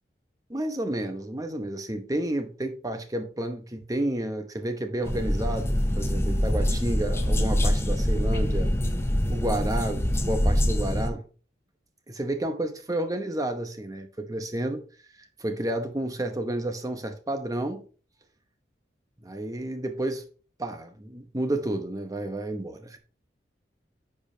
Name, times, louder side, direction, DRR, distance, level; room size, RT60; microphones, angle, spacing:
voice 1, 0.5-8.7 9.3-11.3 12.1-14.8 15.2-17.8 19.2-20.2 20.6-23.0, right 1 dB, 20° right, 0.9 m, -31 dB
sound 1, 5.0-11.1, equal, 15° left, 0.6 m, -25 dB
9.8 x 4.8 x 2.8 m
head